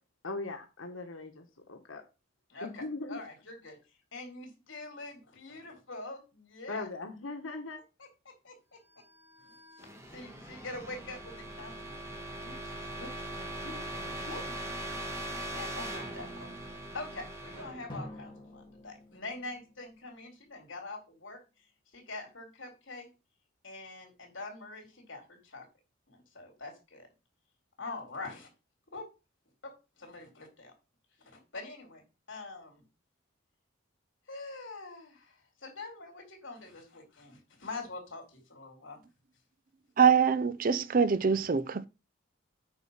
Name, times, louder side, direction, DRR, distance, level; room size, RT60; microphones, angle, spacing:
voice 1, 0.2-2.0 2.6-3.2 6.7-7.8, left 3 dB, 90° left, 1.4 m, -39 dB
voice 2, 2.5-2.8 3.1-3.8 4.1-6.9 8.0-8.8 9.4-9.6 10.1-12.0 12.4-14.5 15.5-21.4 21.9-23.1 23.6-25.6 26.1-27.1 27.8-28.5 28.9-29.0 29.6-30.7 31.3-32.0 32.3-32.8 34.3-39.0, left 3 dB, 70° left, 3.7 m, -44 dB
sound 1, 9.1-18.9, right 1 dB, 15° right, 1.7 m, -41 dB
Drum, 17.9-20.6, left 1 dB, 25° left, 2.8 m, -48 dB
voice 3, 40.0-41.9, right 6 dB, 45° right, 0.4 m, -24 dB
8.3 x 5.4 x 5.7 m
head